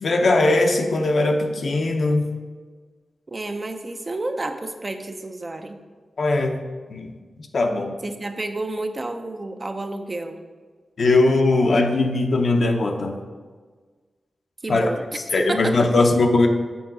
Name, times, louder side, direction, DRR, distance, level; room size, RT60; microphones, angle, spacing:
voice 1, 0.0-2.3 6.2-6.6 6.9-7.1 7.5-7.9 11.0-13.1 14.7-14.9 15.3-16.5, left 2 dB, 65° left, 4 dB, 0.7 m, -19 dB
voice 2, 3.3-5.8 8.0-10.4 14.6-15.0 15.4-15.8, right 2 dB, 40° right, 6 dB, 0.6 m, -30 dB
7.1 x 3.6 x 5.9 m, 1.5 s
cardioid pair, 55°, 0 cm